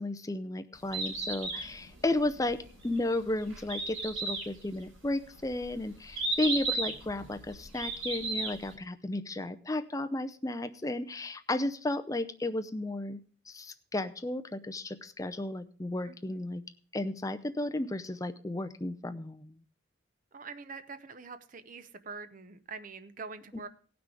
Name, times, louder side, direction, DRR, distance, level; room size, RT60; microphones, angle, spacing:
voice 1, 0.0-13.2 13.5-16.6 16.9-19.6, left 1 dB, 15° left, 9 dB, 0.6 m, -33 dB
Bird, 0.7-8.7, right 2 dB, 80° right, 3.9 m, -35 dB
voice 2, 16.0-16.4 20.3-23.7, right 4 dB, 40° right, 10 dB, 0.7 m, -45 dB
17.0 x 6.1 x 4.8 m, 0.41 s
head